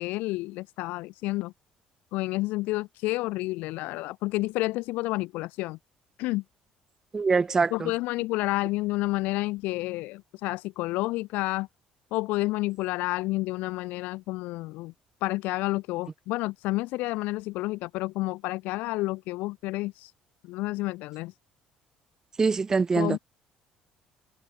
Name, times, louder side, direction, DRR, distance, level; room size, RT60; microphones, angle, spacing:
voice 1, 0.0-1.5 2.1-5.8 6.2-6.4 7.7-11.7 12.1-14.9 15.2-20.1 20.4-21.3 23.0-23.2, left 20 dB, 85° left, 1.0 m, -30 dB
voice 2, 7.1-7.9 22.4-23.2, right 4 dB, 20° right, 0.3 m, -24 dB
cardioid pair, 125°, 3 cm